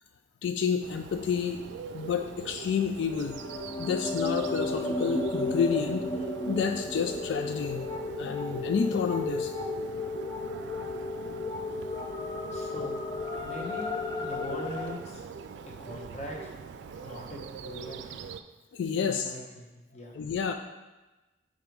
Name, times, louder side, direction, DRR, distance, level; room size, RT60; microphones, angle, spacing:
voice 1, 0.4-1.6 1.9-3.4 3.8-6.1 6.5-7.9 8.2-9.5 18.7-19.3 20.1-20.5, left 6 dB, 85° left, 6 dB, 0.3 m, -29 dB
Bird, 0.8-18.4, right 5 dB, 75° right, 0.3 m, -43 dB
sound 1, 3.1-14.9, left 2 dB, 20° left, 0.4 m, -34 dB
voice 2, 12.5-13.0 13.4-13.9 14.2-15.2 15.8-16.5 17.0-18.2 19.0-20.1, equal, 40° left, -1 dB, 0.9 m, -41 dB
5.3 x 3.9 x 4.6 m, 1.1 s
head